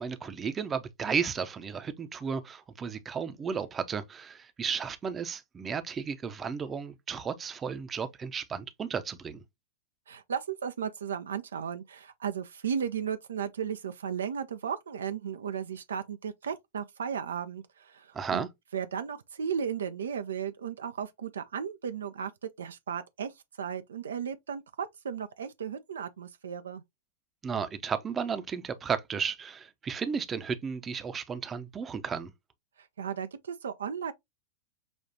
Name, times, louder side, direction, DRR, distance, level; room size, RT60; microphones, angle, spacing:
voice 1, 0.0-9.4 18.1-18.5 27.4-32.3, right 6 dB, 20° right, 0.6 m, -33 dB
voice 2, 10.1-18.5 18.7-26.8 32.8-34.1, right 7 dB, 75° right, 0.4 m, -35 dB
6.1 x 2.3 x 2.6 m
figure-of-eight pair, 95°, 0 cm